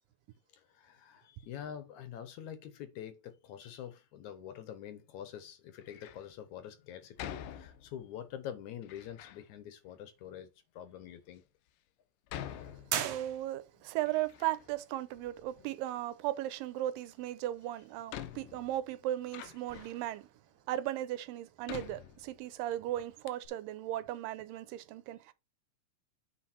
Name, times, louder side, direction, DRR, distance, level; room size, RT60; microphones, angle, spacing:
voice 1, 0.5-11.4, left 10 dB, 70° left, 2.1 m, -46 dB
Door, 5.8-6.3 7.2-8.2 8.8-9.5 10.2-10.3 11.0-11.1 12.3-13.4 13.8-14.8 15.1-16.0 17.3-17.4 18.1-20.1 20.7-20.8 21.7-22.7 23.0-23.1 23.3-23.5, left 10 dB, 90° left, 2.5 m, -46 dB
sound 1, 12.9-13.9, right 10 dB, 70° right, 2.4 m, -36 dB
voice 2, 13.0-20.3 20.7-25.3, right 14 dB, 90° right, 2.4 m, -36 dB
9.0 x 4.1 x 4.4 m
omnidirectional pair, 3.9 m